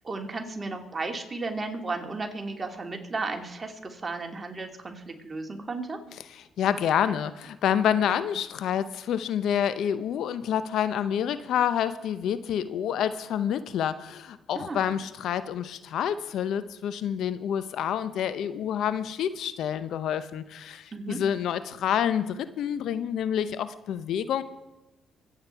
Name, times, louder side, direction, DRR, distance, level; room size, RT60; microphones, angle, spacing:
voice 1, 0.0-6.0 14.5-14.9 20.9-21.2, right 3 dB, 30° right, 3 dB, 2.8 m, -34 dB
voice 2, 6.3-24.4, left 9 dB, 75° left, 13 dB, 0.7 m, -28 dB
25.0 x 8.7 x 4.6 m, 1.0 s
supercardioid pair, 65°, 0 cm